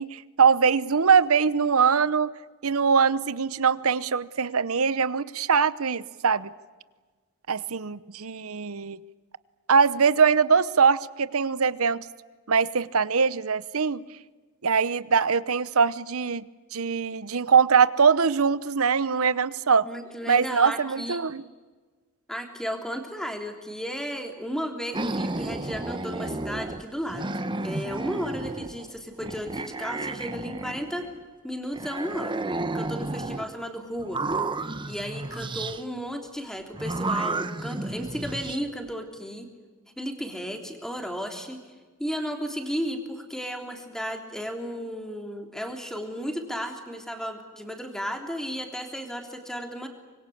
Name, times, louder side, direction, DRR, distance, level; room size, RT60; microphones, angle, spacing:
voice 1, 0.0-2.3 2.6-6.5 7.5-9.0 9.7-12.0 12.5-14.0 14.6-16.4 16.7-19.9 20.3-21.4, right 6 dB, 70° right, 17 dB, 0.9 m, -22 dB
voice 2, 19.8-21.2 22.3-31.1 31.4-32.4 32.7-34.2 34.9-39.5 40.0-41.6 42.0-49.9, equal, ahead, 4 dB, 3.3 m, -34 dB
sound 1, 24.9-26.8 27.1-28.8 29.2-31.2 31.7-33.5 34.0-35.8 36.8-38.6, right 2 dB, 20° right, 1.0 m, -32 dB
25.5 x 22.0 x 8.6 m, 1.4 s
head